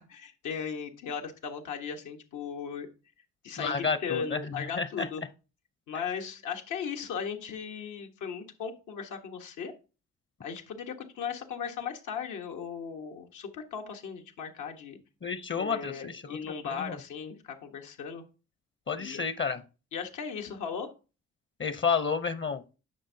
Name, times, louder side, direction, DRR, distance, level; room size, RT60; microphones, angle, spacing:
voice 1, 0.0-2.9 3.4-5.2 5.9-9.7 10.4-15.0 15.5-18.2 18.9-19.2 19.9-20.9, left 6 dB, 80° left, 4 dB, 1.4 m, -37 dB
voice 2, 3.6-4.4 4.8-5.1 15.2-16.4 16.8-16.9 18.9-19.6 21.6-22.8, left 5 dB, 40° left, 12 dB, 0.8 m, -30 dB
9.8 x 6.2 x 2.8 m, 0.33 s
supercardioid pair, 50°, 30 cm